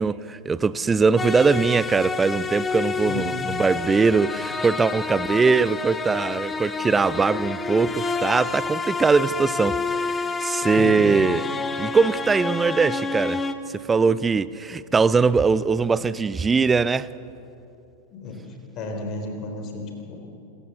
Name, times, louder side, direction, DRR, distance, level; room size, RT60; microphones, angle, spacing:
voice 1, 0.0-11.4 11.8-13.4 13.7-17.1, right 4 dB, 15° right, 0.5 m, -21 dB
sound 1, 1.2-13.5, left 4 dB, 15° left, 1.0 m, -29 dB
voice 2, 10.8-11.1 18.1-18.4 18.7-20.2, left 3 dB, 35° left, 3.8 m, -32 dB
25.5 x 15.0 x 7.0 m
figure-of-eight pair, 90°, 0 cm